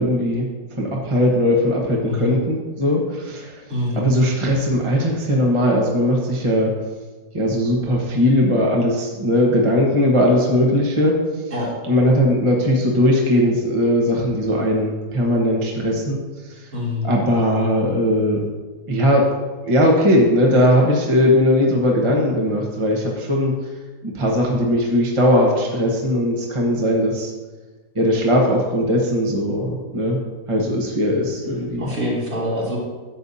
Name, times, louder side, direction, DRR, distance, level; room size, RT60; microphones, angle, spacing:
voice 1, 0.0-3.6 3.9-6.7 7.3-11.2 11.9-16.7 17.0-18.4 18.9-19.3 19.6-23.5 24.0-27.3 27.9-30.2 30.5-31.9, equal, 20° right, -2 dB, 1.1 m, -19 dB
voice 2, 2.0-2.4 3.7-4.1 11.5-11.7 16.7-17.2 31.8-32.8, left 1 dB, 55° right, -7 dB, 3.5 m, -25 dB
12.0 x 8.3 x 2.8 m, 1.3 s
omnidirectional pair, 1.8 m